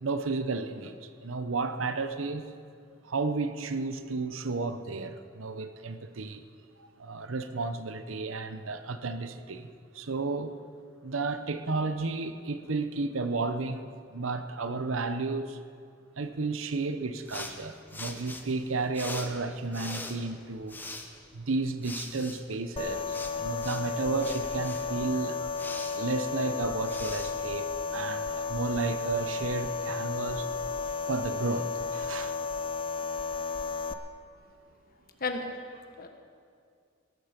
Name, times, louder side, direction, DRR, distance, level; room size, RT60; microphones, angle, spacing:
voice 1, 0.0-2.4 3.0-6.4 6.8-9.7 9.9-10.6 11.0-15.6 16.2-20.8 21.3-25.5 25.9-30.5 30.8-32.4, right 3 dB, 75° right, 10 dB, 0.8 m, -32 dB
sound 1, 17.3-28.2, left 2 dB, 10° left, 1.0 m, -43 dB
sound 2, 22.8-33.9, left 4 dB, 25° left, 0.5 m, -33 dB
voice 2, 35.2-36.1, left 3 dB, 45° left, 5 dB, 1.3 m, -35 dB
18.5 x 12.5 x 5.1 m, 2.2 s
head